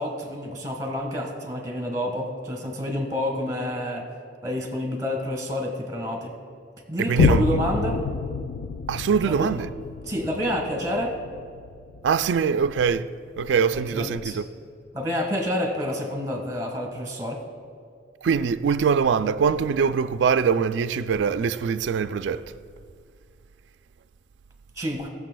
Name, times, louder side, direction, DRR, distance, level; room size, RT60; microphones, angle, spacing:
voice 1, 0.0-4.1 4.4-6.3 6.9-8.0 9.2-9.6 10.0-11.1 13.7-14.4 14.9-17.4 24.8-25.1, equal, 20° right, 1.5 m, -28 dB
voice 2, 7.1-7.6 8.9-9.7 12.0-13.1 13.4-14.4 18.2-22.4, right 6 dB, 75° right, 0.3 m, -23 dB
Boom, 7.2-14.1 14.6-14.7, left 5 dB, 80° left, 0.4 m, -28 dB
19.5 x 6.8 x 2.3 m
head